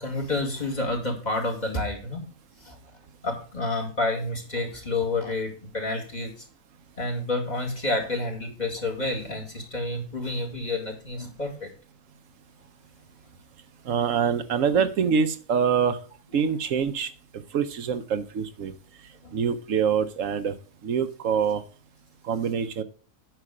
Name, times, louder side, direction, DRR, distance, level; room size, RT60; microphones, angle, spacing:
voice 1, 0.0-2.2 2.6-2.8 3.2-6.3 7.0-11.7 14.7-14.9 16.3-16.4 19.2-19.3, left 2 dB, 30° left, 1 dB, 2.4 m, -29 dB
voice 2, 13.9-16.0 16.3-17.1 17.5-18.7 19.3-20.5 20.8-21.6 22.3-22.8, right 7 dB, 75° right, 10 dB, 1.1 m, -25 dB
9.2 x 5.9 x 4.9 m, 0.40 s
omnidirectional pair, 1.4 m